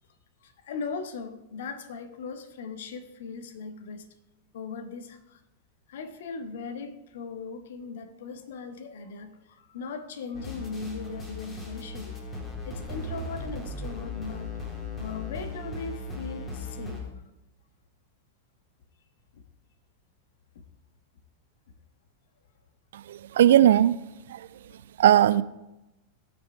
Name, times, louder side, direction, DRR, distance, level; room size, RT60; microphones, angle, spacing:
voice 1, 0.4-4.1 4.5-5.4 5.9-14.6 15.0-17.1 24.6-24.7, left 4 dB, 60° left, 1.2 m, -39 dB
sound 1, 10.3-17.0, left 2 dB, 20° left, 3.3 m, -37 dB
voice 2, 22.9-24.0 24.3-24.5 25.0-25.4, right 11 dB, 60° right, 0.4 m, -19 dB
18.0 x 6.2 x 4.7 m
figure-of-eight pair, 90°, 0 cm